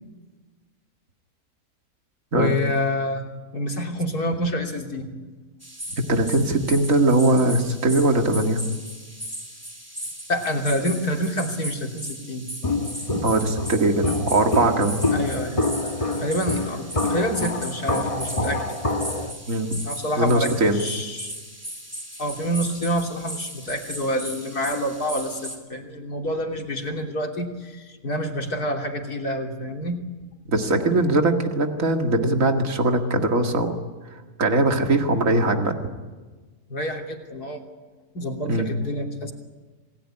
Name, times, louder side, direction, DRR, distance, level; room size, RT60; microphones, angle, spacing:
voice 1, 2.3-3.2 3.5-5.1 10.3-12.4 15.1-15.6 16.2-18.6 19.8-21.4 22.2-30.0 36.7-37.6 38.1-39.3, equal, 80° left, 2 dB, 3.6 m, -27 dB
sound 1, 5.6-25.6, equal, 10° right, 3.4 m, -37 dB
voice 2, 6.0-8.6 13.2-15.0 19.5-19.8 20.2-20.8 30.5-33.7 34.4-35.7 38.5-38.7, right 2 dB, 60° right, 4 dB, 2.5 m, -21 dB
Walk footsteps, 12.6-19.3, left 2 dB, 25° left, 1.4 m, -26 dB
27.5 x 19.0 x 10.0 m, 1.3 s
omnidirectional pair, 1.6 m